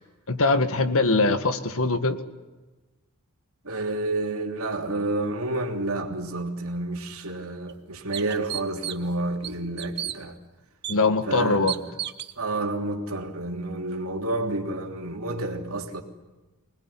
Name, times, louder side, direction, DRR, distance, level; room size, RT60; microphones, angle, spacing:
voice 1, 0.3-2.2 10.9-11.8, left 3 dB, 65° left, 1.8 m, -22 dB
voice 2, 3.6-10.4 11.3-11.7 12.4-16.0, right 2 dB, 70° right, 3.2 m, -30 dB
sound 1, 7.1-7.2 7.7-7.8 8.1-9.1 9.4-10.2 10.8-11.0 11.7-12.3, right 12 dB, 50° right, 1.1 m, -32 dB
25.5 x 20.5 x 10.0 m
head